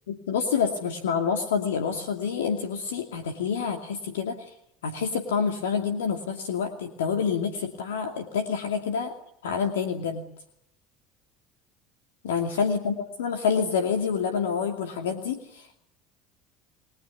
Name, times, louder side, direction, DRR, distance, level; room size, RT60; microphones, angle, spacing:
voice 1, 0.1-4.5 4.8-9.1 9.4-10.2 12.2-15.8, left 6 dB, 80° left, 4 dB, 2.5 m, -27 dB
29.0 x 21.5 x 8.3 m, 0.77 s
hypercardioid pair, 70°, 0 cm